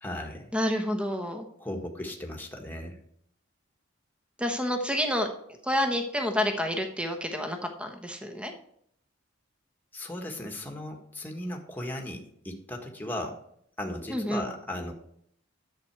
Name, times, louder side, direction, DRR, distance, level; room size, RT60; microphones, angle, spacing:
voice 1, 0.0-0.5 1.6-3.0 9.9-13.4 13.8-14.9, left 1 dB, 10° left, 2 dB, 1.5 m, -36 dB
voice 2, 0.5-1.5 4.4-5.3 5.6-8.5 14.1-14.5, equal, 5° right, 5 dB, 1.1 m, -29 dB
10.5 x 7.8 x 4.7 m, 0.69 s
head